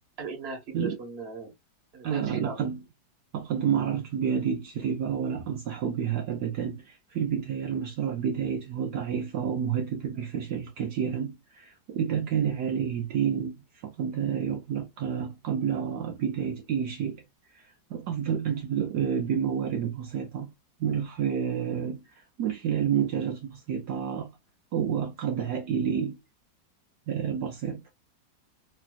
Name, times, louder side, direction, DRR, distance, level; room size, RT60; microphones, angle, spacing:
voice 1, 0.2-1.5 1.9-2.6, right 4 dB, 40° right, 1.3 m, -38 dB
voice 2, 2.0-2.8 3.3-17.2 17.5-20.5 20.8-24.3 24.7-26.2 27.1-27.9, right 8 dB, 70° right, 1.1 m, -29 dB
3.3 x 3.0 x 2.3 m
omnidirectional pair, 1.9 m